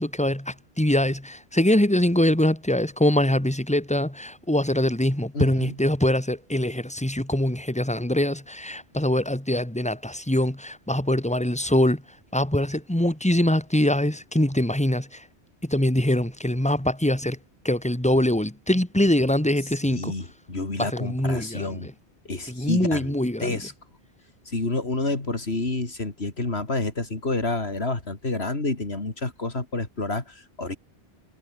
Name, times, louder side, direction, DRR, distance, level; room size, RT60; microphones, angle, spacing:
voice 1, 0.0-12.0 12.3-15.2 15.6-17.4 17.6-20.1 20.8-21.9 22.5-23.6, left 1 dB, 5° left, 2.8 m, -23 dB
voice 2, 5.3-5.7 19.8-21.9 22.3-23.2 23.4-23.7 24.5-30.8, left 2 dB, 80° left, 3.7 m, -29 dB
omnidirectional pair, 1.1 m